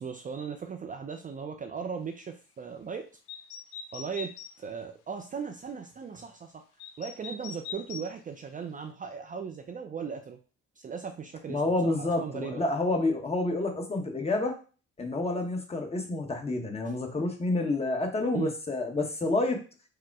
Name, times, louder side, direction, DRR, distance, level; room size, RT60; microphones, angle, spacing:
voice 1, 0.0-3.1 3.9-6.6 7.0-10.4 10.8-12.6 16.8-16.9 18.3-18.5, right 6 dB, 30° right, 5 dB, 0.4 m, -38 dB
sound 1, 3.3-4.5 6.8-8.1, left 6 dB, 85° left, 0.6 m, -42 dB
voice 2, 11.5-14.5 15.0-19.6, left 2 dB, 20° left, 2 dB, 1.1 m, -29 dB
4.8 x 2.1 x 4.6 m, 0.36 s
cardioid pair, 95°, 29 cm